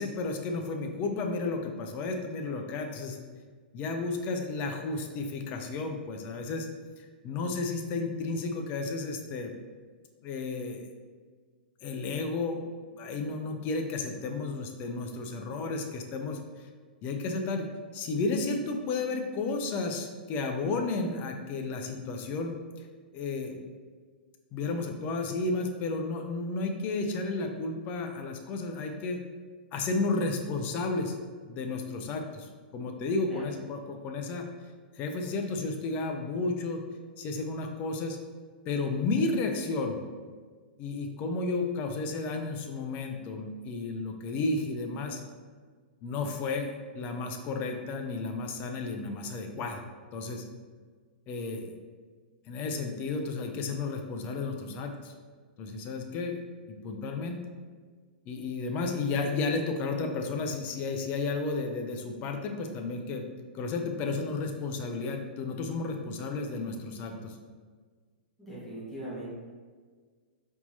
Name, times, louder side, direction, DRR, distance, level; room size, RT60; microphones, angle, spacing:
voice 1, 0.0-3.2 3.7-6.7 7.0-9.5 10.2-10.9 11.8-12.6 12.9-16.7 17.0-22.9 23.1-23.6 24.5-29.2 29.7-31.2 31.5-34.5 35.0-36.8 37.2-38.2 38.6-40.0 40.8-45.2 46.0-49.8 50.1-50.4 51.3-51.7 52.5-55.1 55.6-56.4 56.7-57.4 58.3-63.2 63.5-67.4, left 3 dB, 30° left, 4 dB, 0.5 m, -32 dB
voice 2, 68.4-69.3, right 1 dB, 5° left, -11 dB, 1.5 m, -40 dB
4.3 x 3.6 x 2.7 m, 1.6 s
figure-of-eight pair, 110°, 5 cm